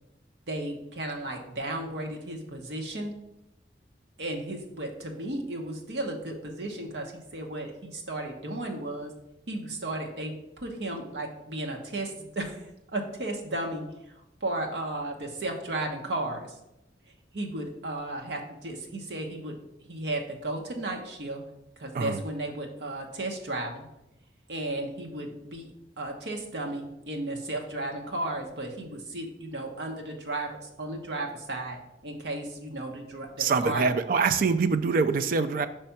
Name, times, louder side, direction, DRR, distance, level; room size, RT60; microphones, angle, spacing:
voice 1, 0.5-3.1 4.2-9.1 9.5-12.6 12.9-13.8 14.4-16.5 17.3-19.6 19.9-21.4 21.8-23.8 24.5-33.9, right 1 dB, 70° right, 2 dB, 1.0 m, -34 dB
voice 2, 33.4-35.7, right 4 dB, 50° right, 9 dB, 0.4 m, -24 dB
5.5 x 3.3 x 5.7 m, 0.88 s
head